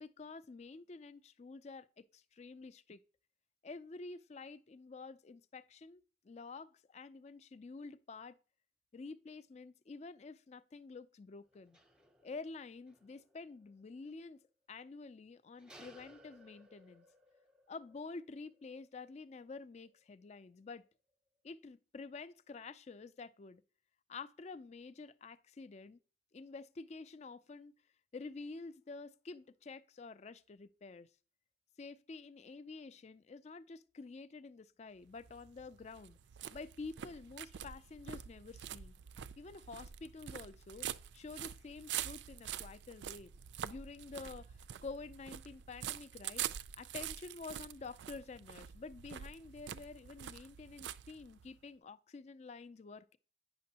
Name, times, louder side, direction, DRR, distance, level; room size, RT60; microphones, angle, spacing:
voice 1, 0.0-3.0 3.6-8.4 8.9-11.8 12.2-14.4 14.7-17.0 17.7-20.8 21.4-23.6 24.1-26.0 26.3-27.7 28.1-31.1 31.8-36.2 36.5-38.9 39.4-40.9 41.1-43.3 43.6-46.4 46.8-53.2, left 4 dB, 35° left, 0.3 m, -49 dB
sound 1, 11.5-14.2 14.4-14.5 15.6-20.4 20.7-21.1, equal, 5° right, 0.7 m, -63 dB
sound 2, 35.1-51.6, right 10 dB, 65° right, 0.3 m, -46 dB
9.4 x 6.0 x 2.8 m
head